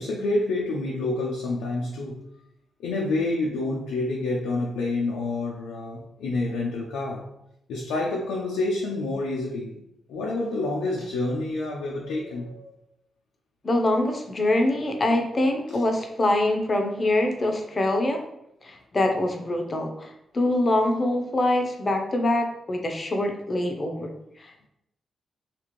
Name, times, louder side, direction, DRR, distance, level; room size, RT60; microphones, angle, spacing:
voice 1, 0.0-2.2 2.8-7.3 7.7-9.8 10.1-12.8 15.7-15.8, left 2 dB, 90° left, -2 dB, 0.4 m, -28 dB
voice 2, 13.6-18.2 18.6-24.1, left 1 dB, 40° left, 4 dB, 0.6 m, -24 dB
2.9 x 2.5 x 3.0 m, 0.80 s
supercardioid pair, 50°, 0 cm